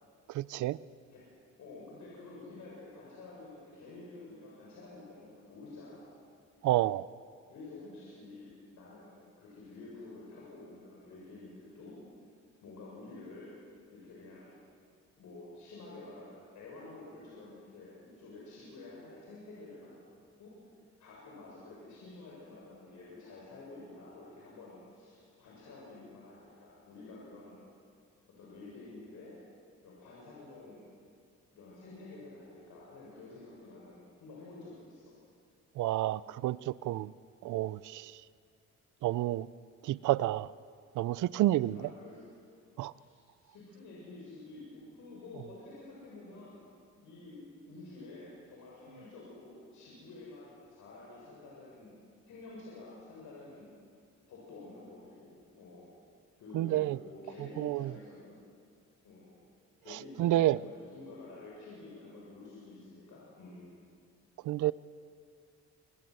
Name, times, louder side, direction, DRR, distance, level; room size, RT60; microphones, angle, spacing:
voice 1, 0.3-0.8 6.6-7.1 35.8-37.1 37.4-38.1 39.0-39.5 39.8-40.5 41.0-41.8 42.8-42.9 56.5-57.0 57.6-57.9 60.2-60.6 64.4-64.7, right 15 dB, 80° right, 18 dB, 0.6 m, -29 dB
voice 2, 1.6-6.1 7.5-12.0 12.6-13.5 13.9-14.6 15.2-20.5 21.0-27.6 28.3-29.4 29.8-30.9 31.5-35.2 41.6-42.4 43.0-43.1 43.4-46.6 47.0-51.9 52.2-53.7 54.3-55.9 56.4-58.3 59.0-59.4 59.8-63.7, left 2 dB, 75° left, -5 dB, 7.4 m, -50 dB
26.5 x 21.0 x 7.9 m, 2.3 s
cardioid pair, 90°, 30 cm